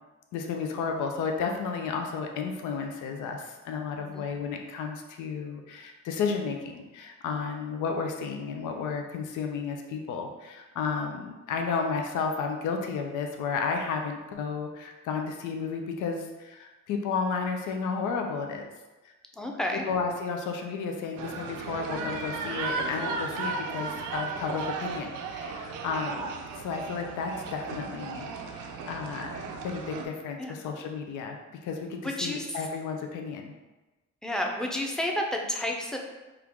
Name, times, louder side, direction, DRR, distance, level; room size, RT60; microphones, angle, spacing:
voice 1, 0.3-18.7 19.0-19.1 19.9-31.4 31.6-33.5, left 5 dB, 80° left, 3 dB, 0.6 m, -32 dB
voice 2, 4.0-4.3 19.3-19.8 30.4-30.5 32.0-32.6 34.2-36.0, left 1 dB, ahead, 1 dB, 0.6 m, -31 dB
sound 1, 21.2-30.1, right 4 dB, 85° right, 0.5 m, -35 dB
4.4 x 2.5 x 3.5 m, 1.1 s
cardioid pair, 90°, 30 cm